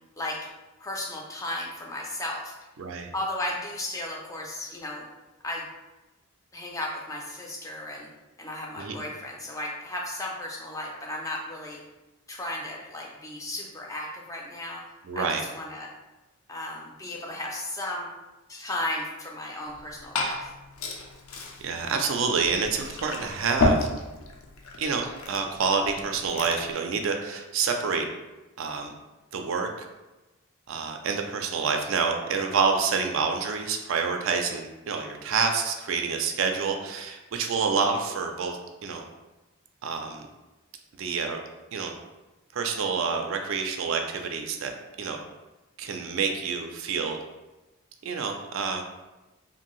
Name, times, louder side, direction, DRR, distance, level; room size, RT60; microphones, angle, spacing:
voice 1, 0.8-2.7 3.1-5.1 5.4-5.7 6.5-8.1 8.4-11.8 12.3-14.8 15.1-15.9 16.5-18.1 18.5-20.5, left 1 dB, 15° left, -1 dB, 0.3 m, -35 dB
voice 2, 2.8-3.1 8.8-9.0 15.0-15.4 21.6-23.9 24.8-28.1 28.6-28.9 29.3-29.9 30.7-39.0 39.8-40.2 41.0-41.4 41.7-41.9 42.5-44.7 45.0-45.2 45.8-47.2 48.0-48.8, right 5 dB, 65° right, 4 dB, 0.3 m, -28 dB
Liquid, 19.6-26.7, left 2 dB, 75° left, 0.4 m, -32 dB
2.6 x 2.6 x 3.0 m, 1.1 s
head